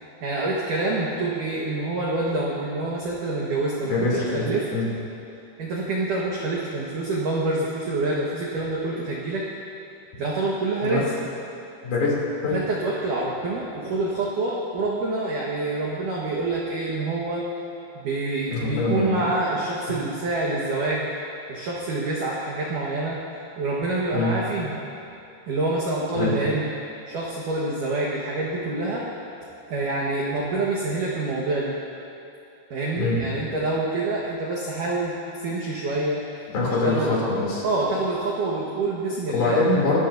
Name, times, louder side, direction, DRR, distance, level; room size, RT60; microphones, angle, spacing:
voice 1, 0.2-4.7 5.6-9.4 10.2-11.1 12.5-17.5 17.9-21.0 21.5-23.2 23.6-24.8 25.5-26.7 27.1-29.1 29.7-31.7 32.7-36.2 36.8-37.2 37.6-39.6, right 2 dB, 90° right, -4 dB, 1.8 m, -26 dB
voice 2, 3.9-4.9 10.8-11.0 11.8-12.2 12.4-12.6 18.5-19.2 24.1-24.3 26.1-26.4 33.0-33.2 36.5-37.6 39.3-40.0, left 3 dB, 50° left, -5 dB, 4.3 m, -23 dB
26.5 x 12.5 x 2.6 m, 2.8 s
omnidirectional pair, 5.9 m